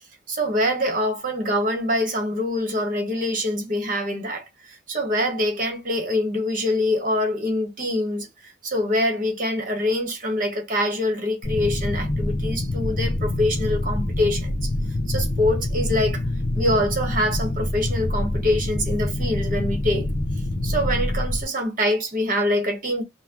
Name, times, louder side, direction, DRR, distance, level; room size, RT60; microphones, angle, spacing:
voice 1, 0.3-4.5 4.9-8.3 8.6-14.7 15.1-16.2 16.5-20.1 20.6-23.0, left 1 dB, 45° right, 1.3 m, -24 dB
sound 1, 11.4-21.4, left 1 dB, 45° left, 0.7 m, -26 dB
5.8 x 2.2 x 2.9 m
head